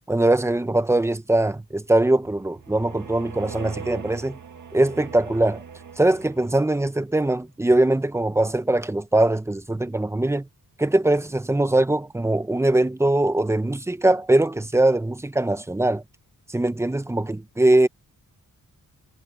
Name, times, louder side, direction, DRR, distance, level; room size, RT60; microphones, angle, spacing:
voice 1, 0.1-4.4 4.7-5.6 6.0-10.5 10.8-16.0 16.5-17.9, right 1 dB, 10° right, 0.7 m, -21 dB
sound 1, 2.2-6.8, right 6 dB, 55° right, 2.0 m, -40 dB
wide cardioid pair, 145°, 35 cm